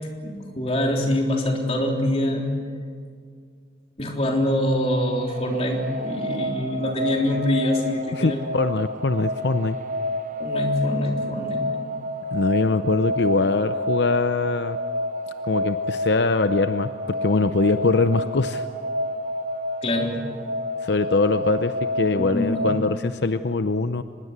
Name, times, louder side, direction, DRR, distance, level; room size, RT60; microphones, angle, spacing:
voice 1, 0.0-2.6 4.0-8.4 10.4-11.7 19.8-20.1 22.1-22.6, left 1 dB, 35° left, 1 dB, 3.6 m, -24 dB
sound 1, 4.8-23.0, left 1 dB, 45° right, 0.9 m, -29 dB
voice 2, 8.1-9.8 12.3-14.8 15.5-16.9 17.2-18.6 20.8-24.0, left 3 dB, 80° left, 10 dB, 0.7 m, -22 dB
24.5 x 21.0 x 8.2 m, 2.1 s
head